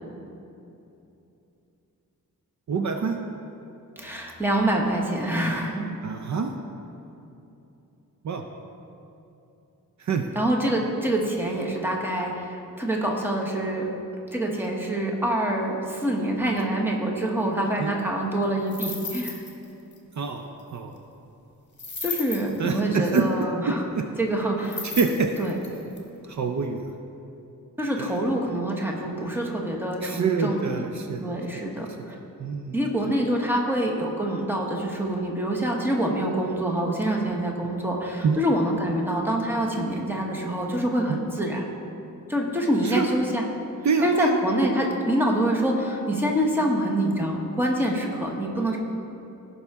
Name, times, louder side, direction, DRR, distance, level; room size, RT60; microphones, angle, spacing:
voice 1, 2.7-3.2 6.0-6.5 8.2-8.4 10.0-10.2 17.8-17.9 20.2-20.4 20.7-21.0 22.6-23.2 23.7-24.1 24.8-25.3 26.3-26.8 28.0-28.2 30.0-31.6 32.4-32.8 38.2-38.4 41.1-41.2 42.8-43.1 43.8-44.4, right 5 dB, 55° right, 5 dB, 0.5 m, -26 dB
voice 2, 4.0-5.9 10.3-13.9 14.3-19.4 22.0-23.8 24.2-24.9 25.4-25.5 27.8-30.9 31.2-32.1 32.7-41.6 42.3-43.4 44.0-48.8, right 1 dB, 5° right, -1 dB, 1.0 m, -26 dB
sound 1, 18.7-19.6 19.9-20.0 21.8-22.7 24.6-26.0, left 4 dB, 30° left, 1.4 m, -34 dB
16.5 x 5.6 x 3.6 m, 2.9 s
wide cardioid pair, 155°, 34 cm